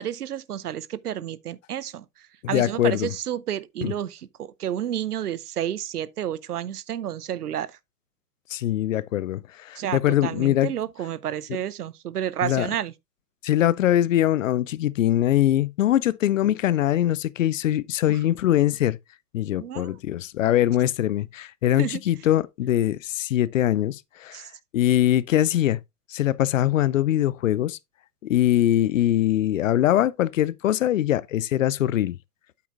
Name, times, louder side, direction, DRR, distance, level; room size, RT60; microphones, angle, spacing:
voice 1, 0.0-2.0 2.5-7.7 9.8-12.9 19.6-20.0 21.8-22.0 24.3-24.5, right 10 dB, 75° right, 0.7 m, -30 dB
voice 2, 2.4-3.1 3.8-3.9 8.5-10.7 12.4-12.7 13.4-19.0 19.3-24.5 24.7-25.8 26.1-27.8 28.2-32.2, left 12 dB, 55° left, 0.5 m, -22 dB
8.4 x 8.1 x 2.4 m
figure-of-eight pair, 110°, 47 cm